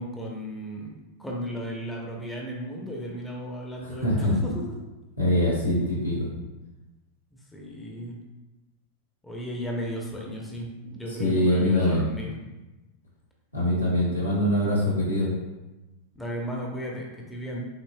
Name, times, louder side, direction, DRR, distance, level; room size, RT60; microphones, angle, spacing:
voice 1, 0.0-4.5 7.5-8.2 9.2-12.4 16.1-17.6, equal, 5° left, -2 dB, 0.8 m, -35 dB
voice 2, 3.8-4.3 5.2-6.3 11.1-12.0 13.5-15.3, left 1 dB, 90° left, -7 dB, 1.3 m, -23 dB
6.2 x 2.9 x 2.2 m, 1.1 s
figure-of-eight pair, 90°, 0 cm